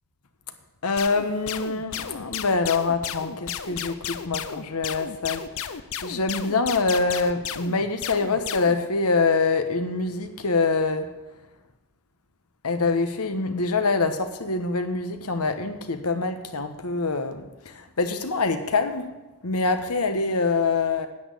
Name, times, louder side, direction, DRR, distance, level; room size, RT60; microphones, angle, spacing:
voice 1, 0.8-11.1 12.6-19.1 19.4-21.1, left 3 dB, 80° left, 8 dB, 1.2 m, -25 dB
sound 1, 1.0-8.8, left 9 dB, 65° left, 0.6 m, -34 dB
10.0 x 8.7 x 8.3 m, 1.1 s
head